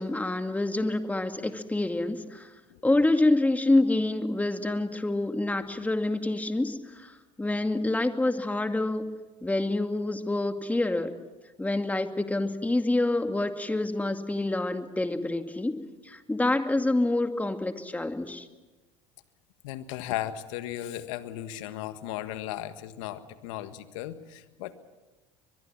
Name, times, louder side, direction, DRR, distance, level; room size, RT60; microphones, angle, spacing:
voice 1, 0.0-2.5 2.8-9.0 9.4-11.1 11.6-15.7 16.0-18.5, left 2 dB, 10° left, 7 dB, 2.2 m, -27 dB
voice 2, 19.6-24.7, left 13 dB, 80° left, 10 dB, 1.6 m, -36 dB
22.5 x 22.5 x 7.4 m, 1.2 s
hypercardioid pair, 80°, 16 cm